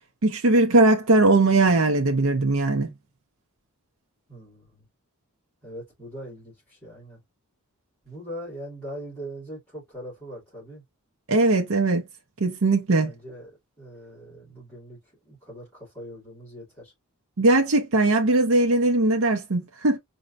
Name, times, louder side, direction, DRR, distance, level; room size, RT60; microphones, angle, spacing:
voice 1, 0.2-2.9 11.3-12.0 12.4-13.1 17.4-20.0, right 2 dB, 60° right, 0.7 m, -20 dB
voice 2, 4.3-4.9 5.6-7.2 8.0-10.8 12.9-13.5 13.8-15.0 15.3-16.9, equal, 5° left, 2.5 m, -41 dB
4.3 x 2.7 x 2.6 m
head